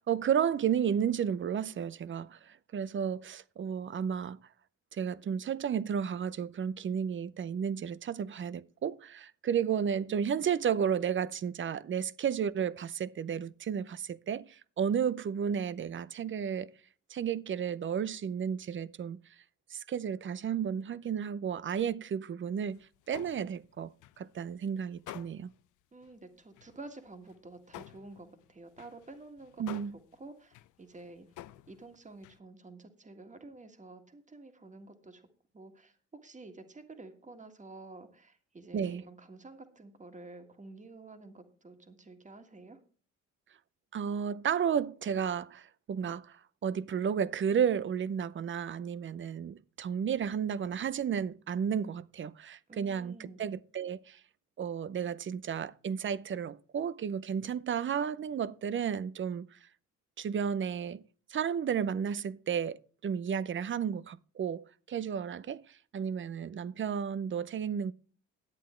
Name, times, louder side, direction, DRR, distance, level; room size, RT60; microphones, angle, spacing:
voice 1, 0.0-4.4 4.9-16.7 17.1-19.2 19.7-22.8 23.1-25.5 29.6-30.0 38.7-39.0 43.9-54.2 54.6-59.6 60.2-61.0 61.3-67.9, right 8 dB, 40° right, 0.6 m, -33 dB
sound 1, 22.6-24.5 24.9-25.7 26.0-26.2 26.5-32.4, left 15 dB, 80° left, 0.6 m, -50 dB
voice 2, 25.9-29.8 30.2-31.3 31.7-35.3 35.5-42.8 52.7-53.5, right 3 dB, 25° right, 1.8 m, -50 dB
10.5 x 8.3 x 4.4 m
cardioid pair, 90°, 30 cm